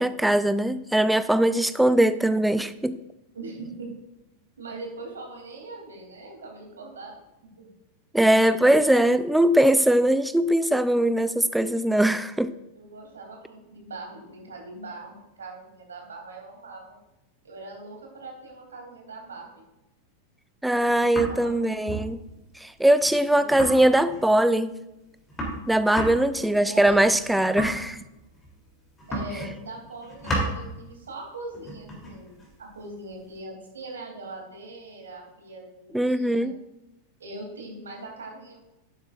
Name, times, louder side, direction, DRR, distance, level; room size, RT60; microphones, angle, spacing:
voice 1, 0.0-3.0 8.1-12.5 20.6-22.2 22.6-24.7 25.7-28.0 35.9-36.5, right 1 dB, 5° right, 13 dB, 0.4 m, -21 dB
voice 2, 3.3-3.9 4.6-7.2 7.6-7.7 8.9-9.2 12.7-17.0 17.4-19.6 21.0-21.9 23.3-23.6 26.3-27.0 29.1-36.5 37.2-38.6, right 2 dB, 70° right, 0 dB, 3.1 m, -41 dB
sound 1, 20.8-21.5 21.9-22.1 22.4-22.5 22.7-22.8 23.0-23.2 23.5-24.3 24.8-24.9 25.0-28.6 29.0-29.7 29.9-30.6 31.5-33.4, equal, 15° left, 3.3 m, -33 dB
12.0 x 9.5 x 2.6 m, 0.94 s
figure-of-eight pair, 90°, 0 cm